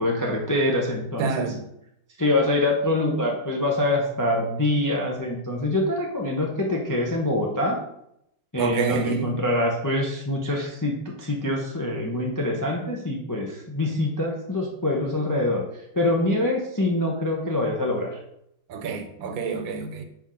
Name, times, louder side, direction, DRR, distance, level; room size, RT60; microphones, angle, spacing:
voice 1, 0.0-1.5 2.2-7.8 8.5-15.6 15.9-18.2, left 1 dB, 25° left, 0.4 m, -25 dB
voice 2, 1.2-1.6 8.6-9.4 18.7-20.0, right 5 dB, 85° right, 1.6 m, -28 dB
5.9 x 5.4 x 3.8 m
omnidirectional pair, 2.1 m